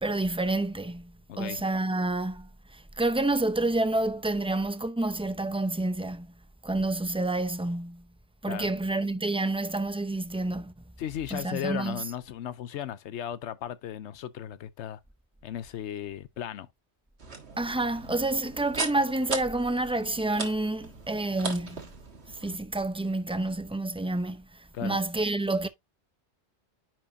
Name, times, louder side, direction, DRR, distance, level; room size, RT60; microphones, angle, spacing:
voice 1, 0.0-6.3 6.6-8.0 8.4-10.7 11.3-12.0 17.6-21.8 22.3-25.7, right 2 dB, 10° right, 0.3 m, -29 dB
voice 2, 1.3-1.6 8.5-8.7 11.0-15.0 15.4-16.7 24.7-25.0, left 10 dB, 80° left, 1.0 m, -36 dB
sound 1, 17.2-22.6, right 4 dB, 70° right, 1.8 m, -38 dB
10.0 x 4.5 x 2.7 m
omnidirectional pair, 1.2 m